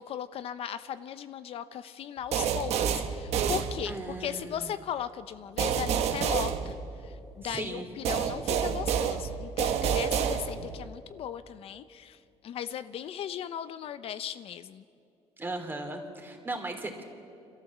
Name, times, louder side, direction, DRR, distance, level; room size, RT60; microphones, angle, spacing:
voice 1, 0.0-6.8 7.0-12.2 12.4-14.8, left 9 dB, 60° left, 12 dB, 0.6 m, -37 dB
sound 1, 2.3-4.2 5.6-7.3 8.1-10.8, right 8 dB, 75° right, 1.4 m, -29 dB
voice 2, 3.8-4.8 7.4-7.9 15.4-17.0, right 2 dB, 20° right, 4 dB, 2.9 m, -37 dB
28.5 x 13.0 x 7.3 m, 2.6 s
cardioid pair, 125°, 11 cm